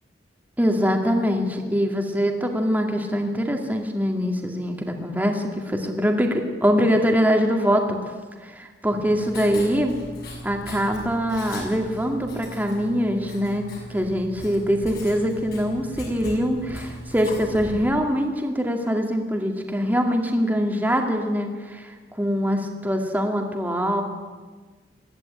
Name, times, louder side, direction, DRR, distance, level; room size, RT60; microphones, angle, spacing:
voice 1, 0.6-8.0 8.4-10.0 10.4-24.0, equal, 10° right, 3 dB, 2.2 m, -23 dB
Writing, 8.9-17.9, equal, 60° left, 6.5 m, -38 dB
20.5 x 14.5 x 8.8 m, 1.4 s
head